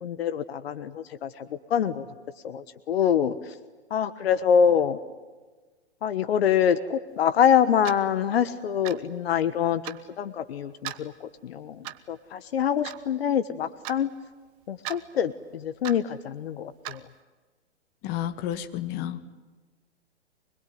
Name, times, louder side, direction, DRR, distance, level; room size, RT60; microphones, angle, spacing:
voice 1, 0.0-2.0 2.4-3.6 3.9-5.0 6.0-14.1 14.7-17.0, left 8 dB, 60° left, 11 dB, 1.4 m, -25 dB
Clock, 7.8-8.0 8.8-9.1 9.8-10.0 10.8-11.0 11.8-12.1 12.8-13.0 13.8-14.0 14.8-15.0 15.8-16.0 16.8-17.0, right 16 dB, 30° right, 1.3 m, -36 dB
voice 2, 18.0-19.2, left 11 dB, 30° left, 11 dB, 1.7 m, -31 dB
25.0 x 21.5 x 9.4 m, 1.3 s
hypercardioid pair, 135°, 35 cm